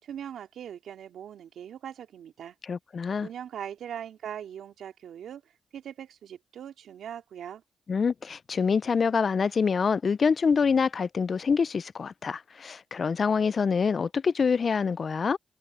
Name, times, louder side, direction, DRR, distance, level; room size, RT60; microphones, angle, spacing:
voice 1, 0.0-2.5 3.2-5.4 5.7-7.6, right 9 dB, 80° right, 2.8 m, -40 dB
voice 2, 2.6-3.3 7.9-15.4, left 5 dB, 60° left, 0.5 m, -26 dB
supercardioid pair, 45°, 0 cm